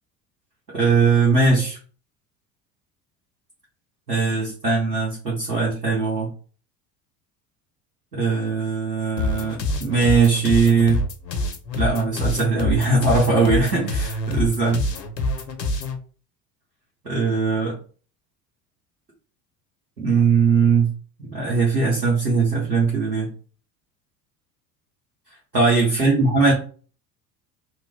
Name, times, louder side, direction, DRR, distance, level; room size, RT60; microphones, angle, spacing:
voice 1, 0.7-1.8 4.1-6.3 8.1-11.0 11.8-14.8 17.0-17.8 20.0-20.9 21.3-23.3 25.5-26.5, right 4 dB, 90° right, -5 dB, 1.0 m, -20 dB
sound 1, 9.2-16.0, left 1 dB, 85° left, 0.6 m, -26 dB
3.0 x 2.1 x 3.6 m, 0.40 s
figure-of-eight pair, 70°, 48 cm